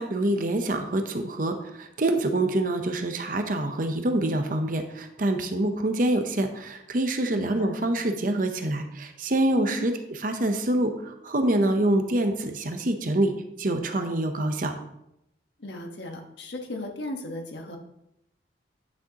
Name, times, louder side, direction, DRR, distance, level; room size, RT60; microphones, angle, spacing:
voice 1, 0.0-9.9 10.2-13.3 13.6-14.7, right 1 dB, 50° right, 6 dB, 0.8 m, -26 dB
voice 2, 7.3-7.7 9.7-9.9 15.6-17.8, left 1 dB, 70° left, 3 dB, 1.3 m, -36 dB
9.6 x 6.4 x 2.9 m, 0.81 s
head